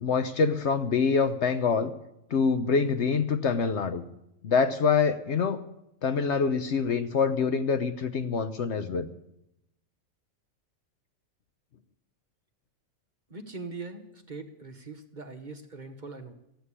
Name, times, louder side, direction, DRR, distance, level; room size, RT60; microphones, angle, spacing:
voice 1, 0.0-1.9 2.3-4.0 4.4-5.6 6.0-9.1, left 5 dB, 60° left, 10 dB, 0.9 m, -25 dB
voice 2, 13.3-16.3, right 3 dB, 35° right, 5 dB, 1.0 m, -41 dB
14.5 x 8.1 x 9.8 m, 0.84 s
omnidirectional pair, 1.5 m